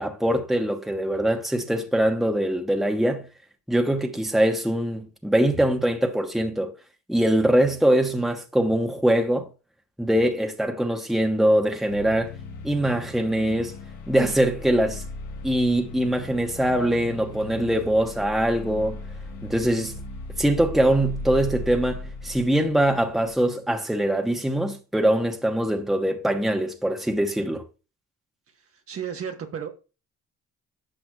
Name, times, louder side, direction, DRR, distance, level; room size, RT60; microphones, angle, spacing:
voice 1, 0.0-3.3 3.7-6.7 7.1-9.5 10.0-12.3 12.6-13.7 14.1-15.0 15.4-19.0 19.4-19.9 20.4-27.6, right 1 dB, ahead, 1.1 m, -23 dB
sound 1, 11.9-23.4, left 2 dB, 85° left, 1.3 m, -38 dB
voice 2, 28.9-29.7, right 8 dB, 50° right, 1.3 m, -32 dB
10.5 x 5.9 x 2.3 m
cardioid pair, 90°, 30 cm